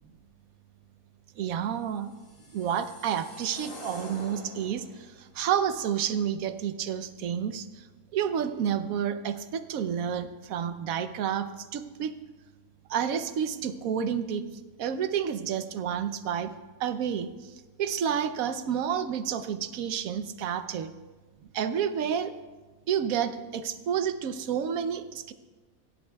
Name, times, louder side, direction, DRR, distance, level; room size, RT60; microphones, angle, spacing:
voice 1, 1.4-2.1 2.5-7.8 8.1-12.1 12.9-14.4 14.8-16.5 16.8-17.5 17.8-20.9 21.5-22.3 22.9-25.3, right 8 dB, 75° right, 11 dB, 1.1 m, -30 dB
sound 1, 1.9-5.1, left 2 dB, 65° left, 2.4 m, -46 dB
24.5 x 10.5 x 2.3 m, 1.3 s
omnidirectional pair, 1.5 m